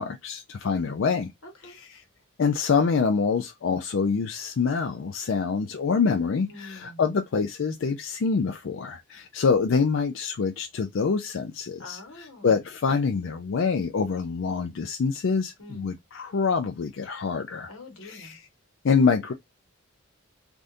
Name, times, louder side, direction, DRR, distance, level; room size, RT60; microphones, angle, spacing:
voice 1, 0.0-1.3 2.4-12.0 12.4-17.7 18.0-18.4 18.8-19.3, left 5 dB, 60° left, 0.4 m, -25 dB
voice 2, 1.4-1.8 6.5-7.0 11.8-12.6 15.6-16.0 17.7-18.4, left 2 dB, 85° left, 1.3 m, -45 dB
3.4 x 2.5 x 2.6 m
head